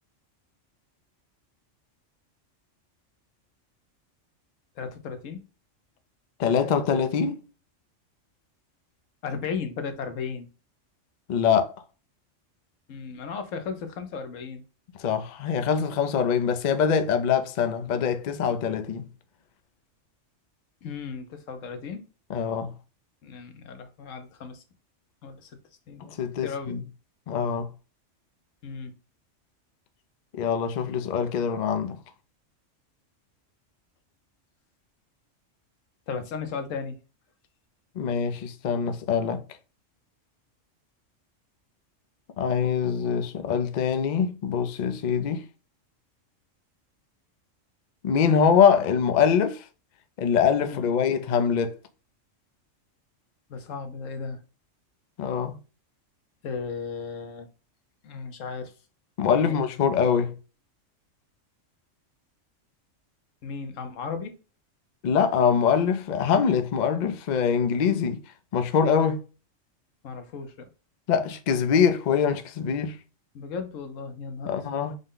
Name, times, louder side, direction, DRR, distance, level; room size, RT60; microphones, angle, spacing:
voice 1, 4.8-5.4 9.2-10.5 12.9-14.6 20.8-22.0 23.2-24.6 25.2-25.5 25.9-26.0 26.4-26.8 28.6-28.9 36.1-37.0 50.7-50.9 53.5-54.4 56.4-57.5 58.0-58.7 59.3-59.5 63.4-64.3 70.0-70.7 73.3-74.8, left 5 dB, 85° left, 1.1 m, -35 dB
voice 2, 6.4-7.4 11.3-11.7 15.0-19.1 22.3-22.7 26.0-26.8 27.3-27.7 30.3-32.0 38.0-39.4 42.4-45.4 48.0-49.7 50.2-51.8 55.2-55.6 59.2-60.3 65.0-68.2 68.5-69.2 71.1-73.0 74.5-75.0, left 7 dB, 60° left, 0.4 m, -24 dB
5.1 x 2.1 x 3.7 m
omnidirectional pair, 1.3 m